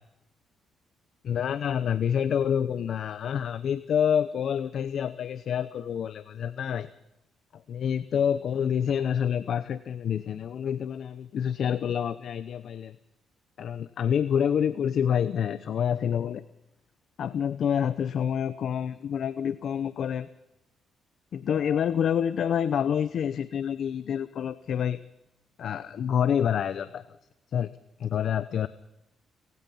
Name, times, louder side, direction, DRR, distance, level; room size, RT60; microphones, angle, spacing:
voice 1, 1.2-6.9 7.5-13.0 13.6-16.4 17.2-20.3 21.3-25.0 25.6-27.0 27.5-27.7 28.0-28.7, left 8 dB, 65° left, 14 dB, 0.8 m, -27 dB
29.0 x 18.0 x 5.6 m, 0.86 s
cardioid pair, 90°, 0 cm